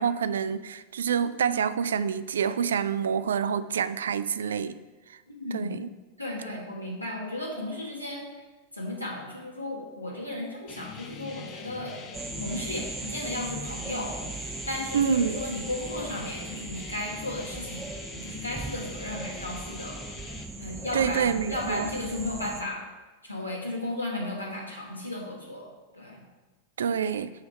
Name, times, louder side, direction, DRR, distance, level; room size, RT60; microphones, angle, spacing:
voice 1, 0.0-4.8 5.5-5.9 14.9-15.4 20.9-21.9 26.8-27.3, right 7 dB, 65° right, 14 dB, 0.4 m, -27 dB
voice 2, 5.3-5.8 6.2-8.2 8.7-12.0 12.4-18.0 18.2-20.0 20.6-22.9 23.2-26.2, left 1 dB, 85° left, -3 dB, 1.9 m, -35 dB
sound 1, 10.7-20.5, left 6 dB, 35° left, 0.9 m, -43 dB
sound 2, 12.1-22.6, right 3 dB, 15° right, 0.7 m, -39 dB
10.5 x 3.4 x 6.3 m, 1.2 s
figure-of-eight pair, 90°, 0 cm